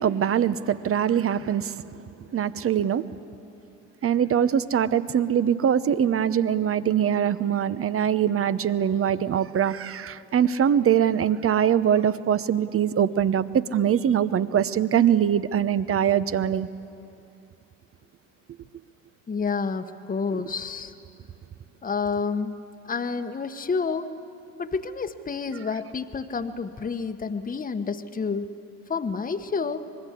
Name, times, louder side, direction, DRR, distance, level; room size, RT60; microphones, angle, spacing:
voice 1, 0.0-1.8 2.3-3.1 4.0-16.7, right 9 dB, 35° right, 15 dB, 0.9 m, -23 dB
voice 2, 19.3-20.9 21.8-22.6 22.8-24.1 24.6-28.5 28.9-29.9, left 5 dB, 20° left, 8 dB, 1.3 m, -29 dB
25.5 x 20.5 x 8.5 m, 2.7 s
hypercardioid pair, 65°, 38 cm